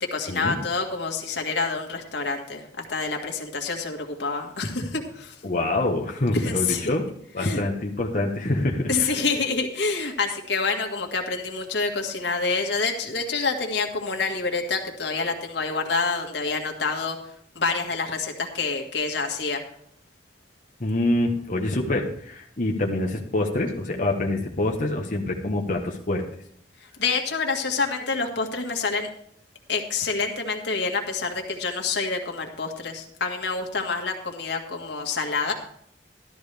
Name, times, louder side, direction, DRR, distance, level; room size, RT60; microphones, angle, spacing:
voice 1, 0.0-5.4 6.3-6.8 7.4-7.6 8.9-19.6 26.8-29.1 29.7-35.5, left 4 dB, 80° left, 3 dB, 1.9 m, -27 dB
voice 2, 5.4-7.1 7.3-9.1 20.8-26.2, left 2 dB, 50° left, 0 dB, 1.1 m, -26 dB
13.5 x 12.5 x 3.4 m, 0.66 s
head